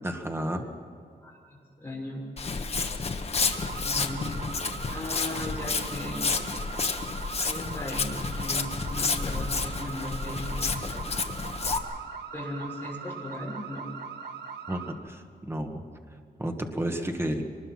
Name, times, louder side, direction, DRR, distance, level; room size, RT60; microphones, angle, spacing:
voice 1, 0.0-0.7 14.7-15.8 16.4-17.4, right 1 dB, 15° right, 4 dB, 1.7 m, -31 dB
voice 2, 1.2-2.3 3.8-4.5 4.9-6.2 7.4-11.0 12.3-13.9, left 1 dB, 15° left, -3 dB, 6.2 m, -37 dB
Walk footsteps, 2.4-11.8, left 4 dB, 35° left, 1.2 m, -30 dB
sound 1, 3.5-14.9, right 6 dB, 75° right, 2.0 m, -40 dB
24.5 x 20.0 x 6.0 m, 2.4 s
wide cardioid pair, 160°, 17 cm